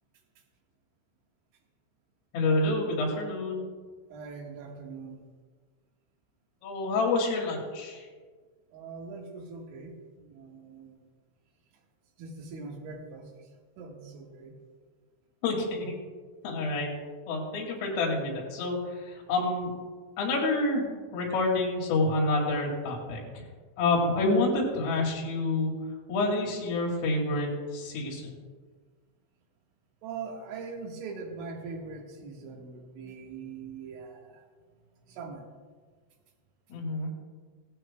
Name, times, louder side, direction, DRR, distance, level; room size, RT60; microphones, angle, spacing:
voice 1, 2.3-3.6 6.6-8.1 15.4-15.9 16.4-16.9 17.3-19.7 20.2-23.2 23.8-25.7 26.1-28.3 36.7-37.1, left 2 dB, 85° left, -3 dB, 5.0 m, -28 dB
voice 2, 4.1-5.3 8.7-11.0 12.2-13.3 13.8-14.6 30.0-34.4 35.1-35.5, right 4 dB, 75° right, 0 dB, 3.9 m, -42 dB
16.5 x 15.5 x 2.2 m, 1.5 s
omnidirectional pair, 5.6 m